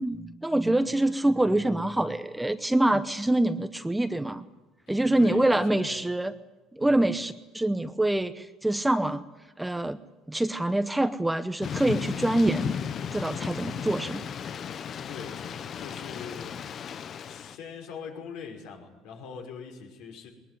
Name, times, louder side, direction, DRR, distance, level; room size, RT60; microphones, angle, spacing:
voice 1, 0.0-4.5 4.9-6.3 6.7-9.2 9.6-10.0 10.3-14.3, right 1 dB, 5° right, 11 dB, 0.7 m, -25 dB
voice 2, 4.9-6.1 6.8-7.1 15.1-16.6 17.2-20.3, left 6 dB, 70° left, 2 dB, 5.7 m, -42 dB
Thunder / Rain, 11.6-17.6, left 7 dB, 35° left, 0.7 m, -35 dB
21.5 x 20.0 x 9.5 m, 1.2 s
cardioid pair, 150°, 0 cm